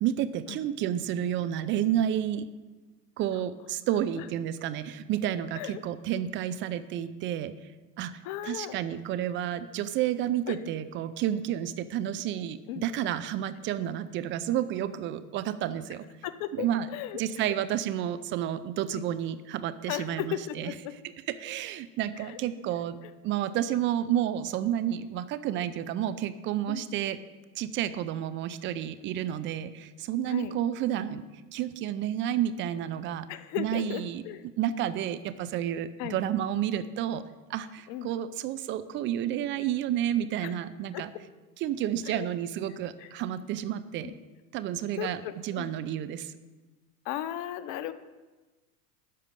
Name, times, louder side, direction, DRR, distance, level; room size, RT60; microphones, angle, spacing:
voice 1, 0.0-2.5 3.2-7.5 8.0-16.0 16.5-16.9 17.1-20.7 21.4-23.0 23.2-27.2 27.6-31.2 31.5-33.3 33.6-34.2 34.6-37.2 37.5-41.1 41.6-44.1 44.5-46.3, right 11 dB, 25° right, 13 dB, 0.4 m, -30 dB
voice 2, 8.2-8.8 10.5-10.6 12.7-12.9 16.2-17.5 18.9-19.0 19.9-20.9 22.2-22.4 23.0-23.1 26.7-26.9 30.3-30.5 33.3-34.5 36.0-36.2 37.9-38.1 40.4-40.5 40.9-41.2 42.1-42.3 43.0-43.1 44.0-44.2 44.9-45.8 47.0-47.9, left 12 dB, 40° left, 13 dB, 0.8 m, -36 dB
12.0 x 5.1 x 7.6 m, 1.2 s
hypercardioid pair, 105°, 48 cm